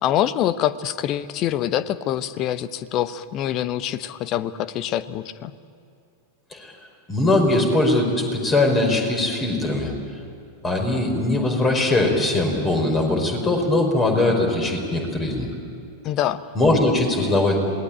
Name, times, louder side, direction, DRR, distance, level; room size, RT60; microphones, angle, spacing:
voice 1, 0.0-5.5 16.0-16.4, left 11 dB, 35° left, 15 dB, 0.9 m, -25 dB
voice 2, 7.1-9.9 10.6-15.5 16.6-17.6, left 2 dB, 20° left, 3 dB, 5.2 m, -21 dB
27.0 x 19.5 x 8.8 m, 2.4 s
figure-of-eight pair, 90°, 0 cm